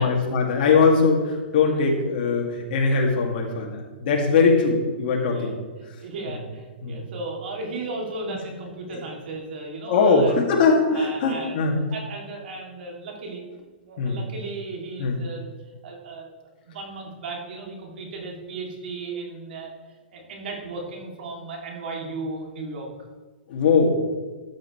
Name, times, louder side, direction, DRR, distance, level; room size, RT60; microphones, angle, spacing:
voice 1, 0.0-5.5 6.8-7.0 8.9-9.0 9.9-11.8 14.0-14.2 15.0-15.2 23.5-24.0, left 4 dB, 55° left, 0 dB, 2.3 m, -21 dB
voice 2, 5.2-5.6 6.0-10.4 10.9-11.6 11.9-13.5 13.8-15.5 15.8-16.3 16.7-19.7 20.1-22.9, right 3 dB, 65° right, 0 dB, 2.6 m, -35 dB
13.0 x 7.6 x 3.2 m, 1.3 s
hypercardioid pair, 130°, 6 cm